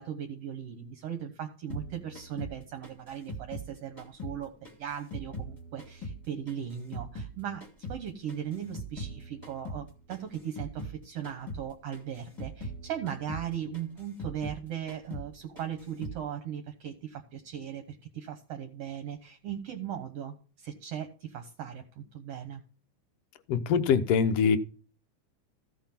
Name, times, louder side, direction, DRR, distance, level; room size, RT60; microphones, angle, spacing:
voice 1, 0.0-22.6, right 9 dB, 60° right, 1.8 m, -38 dB
sound 1, 1.7-4.4 4.6-7.3 7.6-11.0 11.2-11.7 11.9-14.6 14.9-15.3 15.6-16.2, right 1 dB, 10° left, 1.6 m, -41 dB
voice 2, 23.5-24.6, left 6 dB, 65° left, 1.6 m, -23 dB
14.5 x 5.6 x 5.8 m
omnidirectional pair, 3.7 m